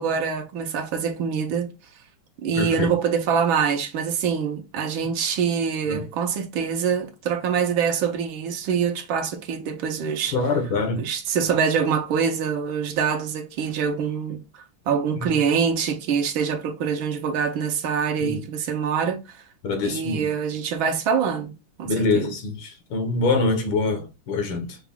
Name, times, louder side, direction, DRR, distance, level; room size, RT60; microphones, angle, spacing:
voice 1, 0.0-1.7 2.4-10.4 11.0-19.4 19.8-21.5 21.8-22.3, right 6 dB, 70° right, 1.5 m, -25 dB
voice 2, 2.6-3.0 5.9-6.1 10.3-11.0 18.2-18.4 19.6-20.3 21.8-24.8, left 3 dB, 70° left, 2.0 m, -24 dB
5.9 x 2.4 x 3.4 m
omnidirectional pair, 2.3 m